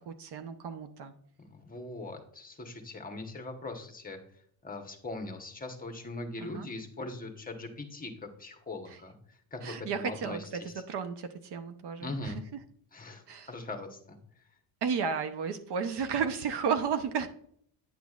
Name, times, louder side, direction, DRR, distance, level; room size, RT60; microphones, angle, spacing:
voice 1, 0.1-1.1 6.4-6.7 8.9-9.0 9.6-12.4 13.3-13.5 14.8-17.3, right 6 dB, 55° right, 9 dB, 0.8 m, -33 dB
voice 2, 1.4-4.2 4.6-8.1 8.4-9.2 9.5-10.7 12.0-12.4 12.9-14.2, left 2 dB, 15° left, 4 dB, 1.1 m, -41 dB
9.7 x 6.0 x 2.4 m, 0.64 s
cardioid pair, 100°, 49 cm